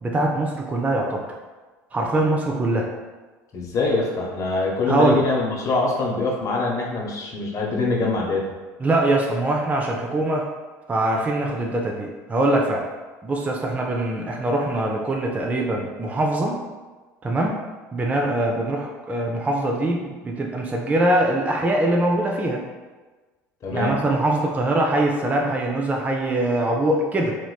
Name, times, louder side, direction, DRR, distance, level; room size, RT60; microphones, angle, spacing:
voice 1, 0.0-1.2 1.9-2.9 4.9-5.3 8.8-10.5 10.9-12.8 13.2-16.6 17.2-17.6 17.9-22.6 23.7-27.4, right 1 dB, 15° right, 0 dB, 0.4 m, -22 dB
voice 2, 3.5-8.6 23.6-23.9, left 3 dB, 35° left, -2 dB, 0.8 m, -24 dB
3.1 x 3.0 x 2.3 m, 1.3 s
hypercardioid pair, 70°, 9 cm